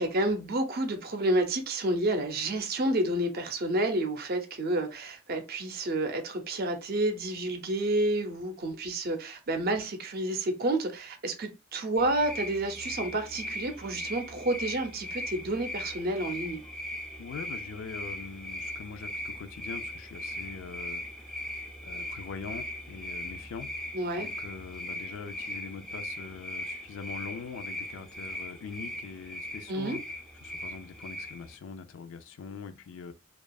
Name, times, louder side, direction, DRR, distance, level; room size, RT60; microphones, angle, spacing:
voice 1, 0.0-16.6 23.9-24.3 29.7-30.0, right 1 dB, 50° right, 0.6 m, -30 dB
sound 1, 12.0-31.6, left 1 dB, ahead, 0.4 m, -39 dB
voice 2, 17.2-21.4 21.8-23.7 24.2-30.0 30.4-33.1, left 5 dB, 70° left, 0.4 m, -42 dB
2.7 x 2.4 x 2.2 m
head